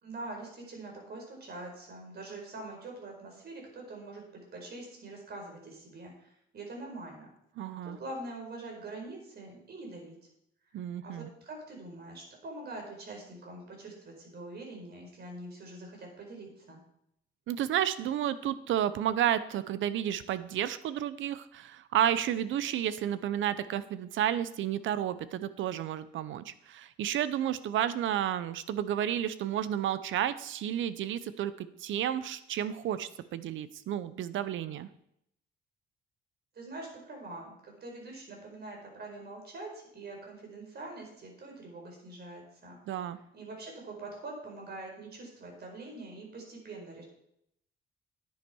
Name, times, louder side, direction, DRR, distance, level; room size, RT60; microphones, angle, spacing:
voice 1, 0.0-7.3 7.8-10.2 11.0-16.8 36.5-42.8 43.3-47.0, right 2 dB, 55° right, 0 dB, 5.0 m, -44 dB
voice 2, 7.6-8.0 10.7-11.3 17.5-34.9 42.9-43.2, right 10 dB, 75° right, 15 dB, 0.8 m, -31 dB
10.5 x 10.0 x 4.6 m, 0.75 s
cardioid pair, 90°, 20 cm